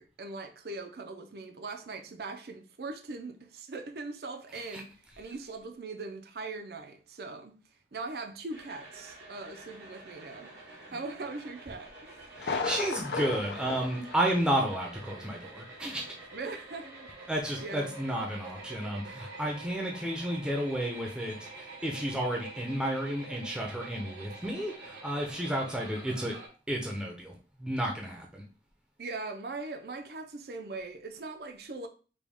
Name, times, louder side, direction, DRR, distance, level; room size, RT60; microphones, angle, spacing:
voice 1, 0.0-4.9 5.2-7.6 7.9-10.6 10.9-12.2 16.3-17.1 17.6-18.1 29.0-31.9, right 3 dB, 60° right, 0.5 m, -40 dB
sound 1, 8.5-26.5, right 2 dB, 85° right, 1.2 m, -47 dB
Thunder, 12.4-15.0 15.2-15.3 15.9-16.0, left 4 dB, 70° left, 0.5 m, -35 dB
voice 2, 12.4-16.0 17.3-26.4 26.7-27.3 27.6-28.4, right 1 dB, 5° right, 0.6 m, -32 dB
5.0 x 2.3 x 3.5 m
head